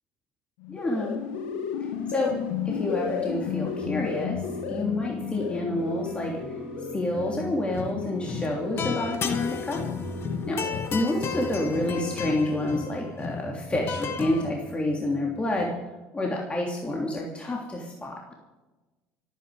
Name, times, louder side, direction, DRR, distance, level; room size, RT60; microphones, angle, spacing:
sound 1, 0.6-11.1, left 8 dB, 75° left, 1.5 m, -34 dB
voice 1, 0.7-1.2 1.8-2.4 2.6-4.4 4.7-6.6 6.9-9.8 10.5-10.6 10.9-15.7 16.1-18.3, left 1 dB, 20° left, -1 dB, 3.1 m, -28 dB
sound 2, 2.3-15.7, right 3 dB, 10° right, 2.3 m, -43 dB
sound 3, 7.6-8.0 8.2-14.4, left 6 dB, 45° left, 1.9 m, -33 dB
26.0 x 9.8 x 5.0 m, 1.1 s
hypercardioid pair, 75°, 6 cm